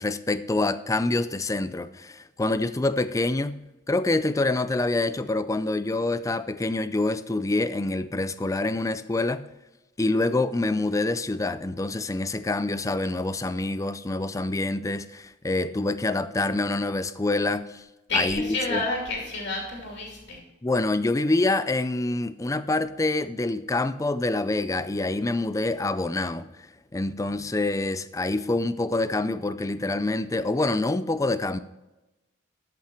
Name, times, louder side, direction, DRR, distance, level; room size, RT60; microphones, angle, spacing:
voice 1, 0.0-3.6 3.9-9.5 10.0-17.8 18.1-18.8 20.6-26.5 26.9-31.6, left 2 dB, 15° left, 0.4 m, -26 dB
voice 2, 18.1-20.4, left 2 dB, 60° left, 2.5 m, -29 dB
13.0 x 5.8 x 4.5 m
head